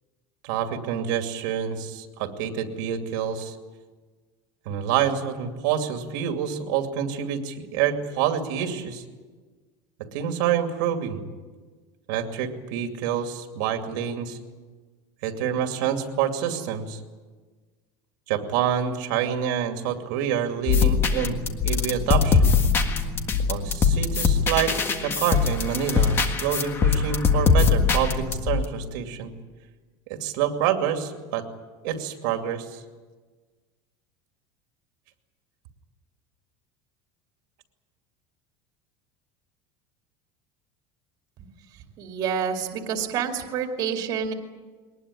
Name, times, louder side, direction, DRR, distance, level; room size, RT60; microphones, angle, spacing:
voice 1, 0.4-3.5 4.7-9.0 10.1-11.2 12.1-14.4 15.2-17.0 18.3-21.4 21.6-22.5 23.5-29.3 30.1-31.5 31.8-32.8, right 9 dB, 65° right, 5 dB, 2.5 m, -27 dB
sound 1, 20.7-28.6, left 5 dB, 20° left, 1.6 m, -22 dB
voice 2, 42.0-44.3, right 7 dB, 35° right, 4 dB, 2.4 m, -28 dB
22.5 x 19.5 x 9.8 m, 1.4 s
cardioid pair, 180°, 11 cm